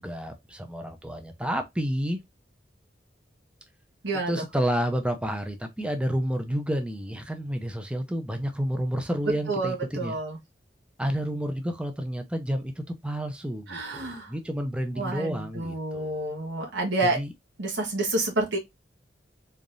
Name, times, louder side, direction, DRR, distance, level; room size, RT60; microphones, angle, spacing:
voice 1, 0.0-2.2 4.3-10.2 11.0-16.2 17.0-17.3, equal, 5° right, 0.7 m, -30 dB
voice 2, 9.5-10.4 13.7-14.3 15.0-17.2 17.6-18.6, right 2 dB, 90° right, 1.3 m, -29 dB
3.9 x 3.5 x 2.6 m
head